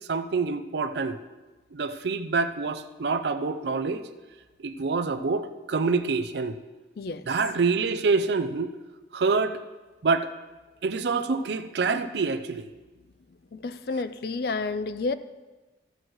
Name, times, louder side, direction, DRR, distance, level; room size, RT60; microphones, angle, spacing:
voice 1, 0.1-1.2 1.7-4.0 4.6-6.6 7.3-8.7 9.1-9.6 10.0-10.3 10.8-12.7, right 4 dB, 70° right, 11 dB, 0.5 m, -26 dB
voice 2, 13.5-15.1, left 3 dB, 55° left, 12 dB, 0.4 m, -30 dB
14.5 x 7.7 x 3.1 m, 1.2 s
head